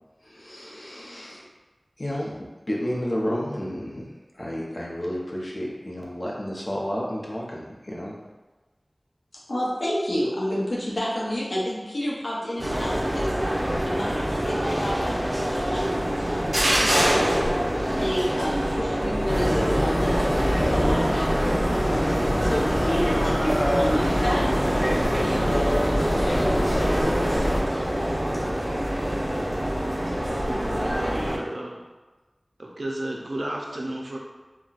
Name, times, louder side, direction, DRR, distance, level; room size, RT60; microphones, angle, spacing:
voice 1, 0.2-1.5 2.0-2.4 2.7-8.1, equal, 50° left, -4 dB, 0.7 m, -31 dB
voice 2, 9.5-13.3 13.8-17.3 17.9-20.3 20.6-27.4, equal, 85° left, -5 dB, 0.7 m, -31 dB
sound 1, 12.6-31.4, equal, 40° right, 0.7 m, -26 dB
sound 2, 19.3-27.6, equal, ahead, 0.7 m, -24 dB
voice 3, 30.2-31.8 32.6-34.2, right 1 dB, 75° right, -1 dB, 0.5 m, -33 dB
3.9 x 2.2 x 2.3 m, 1.2 s
wide cardioid pair, 40°, 0 cm